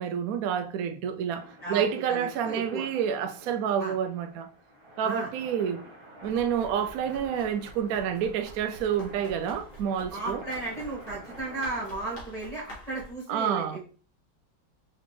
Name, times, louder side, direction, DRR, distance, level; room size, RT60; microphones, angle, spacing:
voice 1, 0.0-4.5 5.0-5.8 6.2-10.4 13.3-13.8, right 8 dB, 70° right, 0.9 m, -29 dB
sound 1, 1.3-12.1, equal, 35° right, 0.4 m, -49 dB
voice 2, 2.1-2.8 3.8-3.9 5.0-5.3 10.1-13.8, right 2 dB, 20° right, 1.8 m, -35 dB
Run, 6.2-13.1, equal, 50° left, 1.6 m, -47 dB
4.2 x 3.8 x 3.2 m
omnidirectional pair, 1.9 m